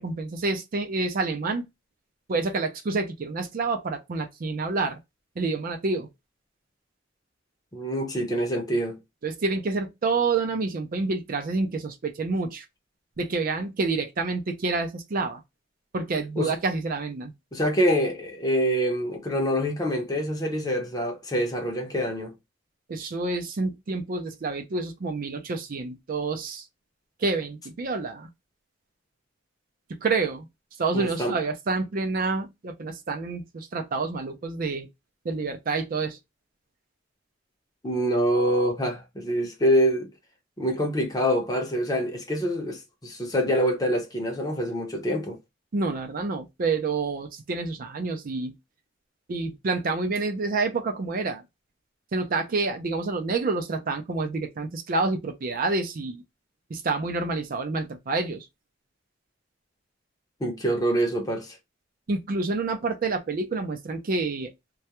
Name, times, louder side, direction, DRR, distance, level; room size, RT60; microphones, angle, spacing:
voice 1, 0.0-1.6 2.3-5.0 5.4-6.1 9.2-12.6 13.2-15.4 15.9-17.3 22.9-26.6 27.2-28.3 29.9-30.5 30.8-34.9 35.2-36.2 45.7-48.5 49.3-51.4 52.1-56.2 56.7-58.5 62.1-64.5, right 3 dB, 50° right, 0.4 m, -28 dB
voice 2, 7.7-9.0 16.4-16.5 17.5-22.3 30.9-31.3 37.8-40.1 40.6-45.4 60.4-61.6, equal, 20° left, 0.6 m, -25 dB
2.3 x 2.1 x 2.8 m
head